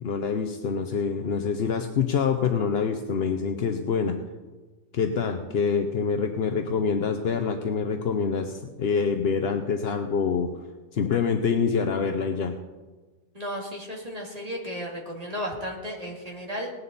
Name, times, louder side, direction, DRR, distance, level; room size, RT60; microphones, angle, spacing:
voice 1, 0.0-4.2 4.9-10.5 10.9-12.5, left 6 dB, 55° left, 6 dB, 0.8 m, -26 dB
voice 2, 13.3-16.7, equal, 25° right, -1 dB, 2.4 m, -34 dB
18.5 x 11.0 x 4.1 m, 1.3 s
omnidirectional pair, 1.7 m